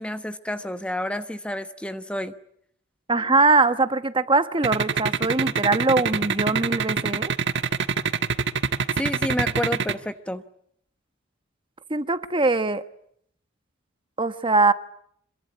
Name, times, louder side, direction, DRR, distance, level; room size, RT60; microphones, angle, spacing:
voice 1, 0.0-2.3 9.0-10.4, left 1 dB, 5° left, 1.1 m, -29 dB
voice 2, 3.1-7.3 11.9-12.8 14.2-14.7, right 3 dB, 25° right, 1.3 m, -21 dB
sound 1, 4.6-9.9, right 5 dB, 60° right, 1.4 m, -24 dB
26.5 x 23.0 x 9.6 m
head